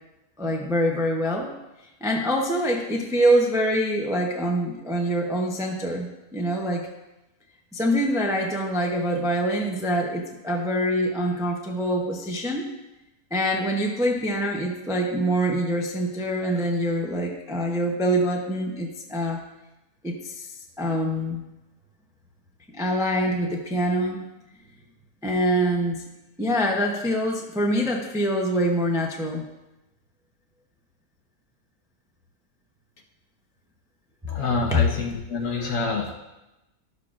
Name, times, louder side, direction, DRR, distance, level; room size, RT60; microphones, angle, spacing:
voice 1, 0.4-1.5 2.0-6.9 7.7-12.7 13.3-19.4 20.0-20.5 20.8-21.4 22.7-24.2 25.2-26.0 26.4-29.5 34.7-34.8, equal, 5° right, 1 dB, 0.3 m, -25 dB
voice 2, 34.3-36.1, left 3 dB, 60° left, 0 dB, 1.4 m, -27 dB
11.5 x 6.6 x 2.5 m, 0.97 s
omnidirectional pair, 1.6 m